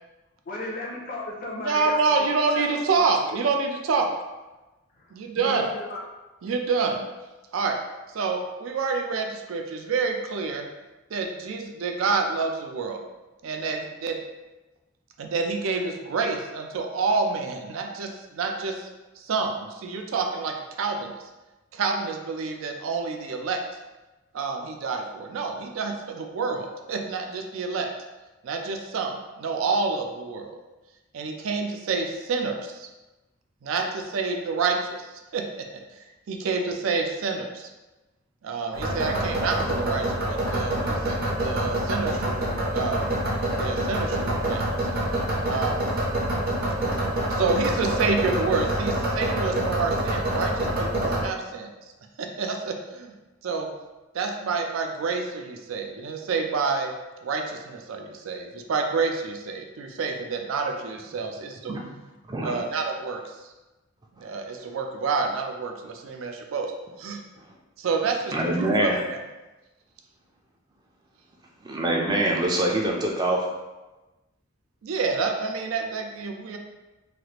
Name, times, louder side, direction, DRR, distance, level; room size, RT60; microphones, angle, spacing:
voice 1, 0.5-2.7 2.9-3.4 5.0-6.0, left 2 dB, 45° left, -3 dB, 0.5 m, -36 dB
voice 2, 1.6-4.1 5.1-5.7 6.4-7.0 7.5-7.8 8.1-10.7 11.1-13.0 13.4-14.2 15.2-18.8 19.2-21.2 21.7-23.6 24.3-27.9 28.4-30.6 31.1-32.9 33.6-34.9 35.3-35.7 36.3-37.7 38.4-42.5 42.7-43.1 43.6-44.9 45.5-45.8 46.9-51.7 52.2-53.1 53.4-53.7 54.1-56.9 57.2-61.8 62.4-63.2 64.2-66.7 67.0-67.2 67.8-68.3 68.6-69.2 74.8-76.6, right 4 dB, 85° right, 3 dB, 0.4 m, -28 dB
sound 1, 38.7-51.2, right 1 dB, 50° right, 0.7 m, -26 dB
voice 3, 68.3-69.0 71.6-73.5, right 1 dB, 20° right, 0 dB, 0.4 m, -24 dB
3.2 x 2.4 x 2.9 m, 1.1 s
head